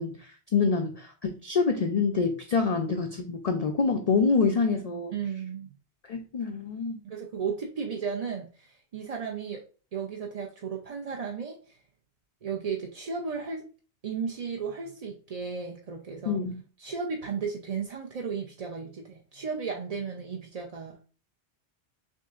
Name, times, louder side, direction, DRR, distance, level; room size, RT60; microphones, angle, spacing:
voice 1, 0.0-5.1 6.1-7.0 16.3-16.6, left 5 dB, 55° left, 4 dB, 0.4 m, -26 dB
voice 2, 5.1-5.7 7.0-9.6 9.9-11.8 12.4-13.7 14.0-16.4 16.8-21.0, right 6 dB, 50° right, 0 dB, 0.5 m, -34 dB
6.3 x 2.6 x 2.4 m, 0.37 s
omnidirectional pair, 1.2 m